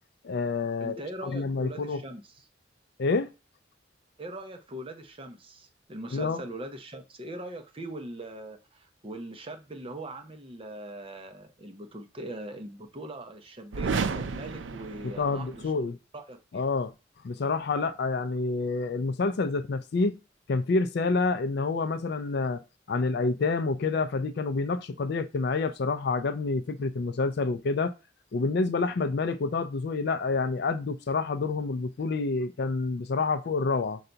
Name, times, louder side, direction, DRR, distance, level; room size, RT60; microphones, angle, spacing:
voice 1, 0.2-2.0 3.0-3.3 6.1-6.4 15.0-16.0 16.5-16.9 17.2-20.2 20.5-22.6 22.9-27.9 28.3-34.0, left 3 dB, 60° left, 0.4 m, -28 dB
voice 2, 0.8-2.4 4.2-16.6, right 1 dB, 30° right, 0.6 m, -41 dB
sound 1, 13.7-15.7, right 5 dB, 80° right, 0.4 m, -32 dB
5.6 x 2.3 x 3.8 m
head